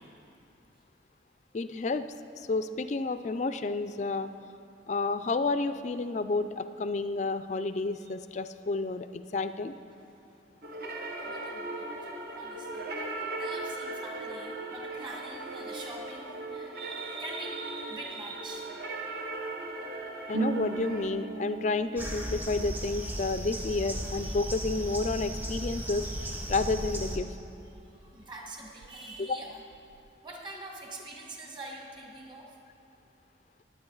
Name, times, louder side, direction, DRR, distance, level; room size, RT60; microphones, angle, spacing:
voice 1, 1.5-2.1 2.4-4.3 4.9-9.7 20.3-26.1 26.5-27.3 29.2-29.4, left 3 dB, 40° left, 11 dB, 0.4 m, -30 dB
voice 2, 10.0-10.4 11.2-12.9 13.4-18.8 24.2-24.4 27.6-29.6 30.2-32.6, right 2 dB, 25° right, 0 dB, 1.4 m, -44 dB
sound 1, 10.6-21.1, right 2 dB, 55° right, 1.1 m, -38 dB
Harp, 20.3-27.8 28.1-29.2 29.4-30.1, right 4 dB, 80° right, 0.3 m, -41 dB
sound 2, 22.0-27.2, equal, 10° right, 0.9 m, -36 dB
18.5 x 9.0 x 3.9 m, 2.7 s
head